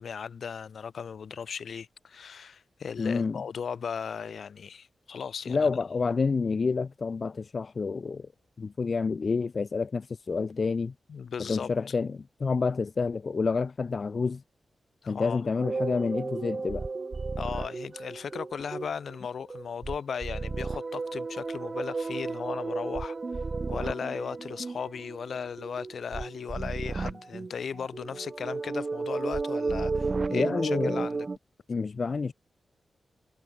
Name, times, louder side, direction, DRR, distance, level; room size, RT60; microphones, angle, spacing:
voice 1, 0.0-5.7 11.1-11.7 15.0-15.4 17.4-23.2 23.7-31.3, left 6 dB, 70° left, 1.1 m, -37 dB
voice 2, 3.0-3.4 5.5-8.3 8.6-10.9 11.4-14.4 15.1-16.9 30.3-31.1 31.7-32.3, left 4 dB, 45° left, 0.4 m, -28 dB
sound 1, 15.6-19.2 19.5-31.4, right 3 dB, 35° right, 2.0 m, -33 dB
wide cardioid pair, 105°, 0 cm